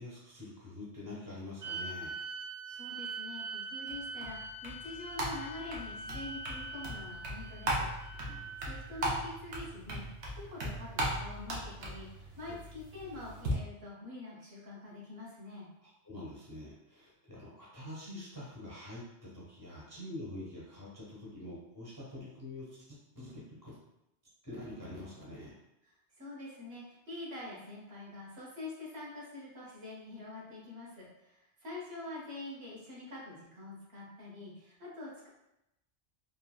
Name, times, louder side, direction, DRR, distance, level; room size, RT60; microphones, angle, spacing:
voice 1, 0.0-2.1 8.3-8.5 12.5-12.6 15.8-23.8 24.4-25.5, left 1 dB, 25° left, -7 dB, 0.5 m, -46 dB
sound 1, 1.6-9.1, right 3 dB, 40° right, 0.5 m, -43 dB
voice 2, 2.7-7.9 8.7-10.0 10.3-15.7 26.2-35.3, left 2 dB, 65° right, -6 dB, 1.2 m, -45 dB
sound 2, 3.9-13.5, right 1 dB, 85° right, 1.0 m, -38 dB
3.2 x 2.3 x 2.2 m, 0.87 s
omnidirectional pair, 1.2 m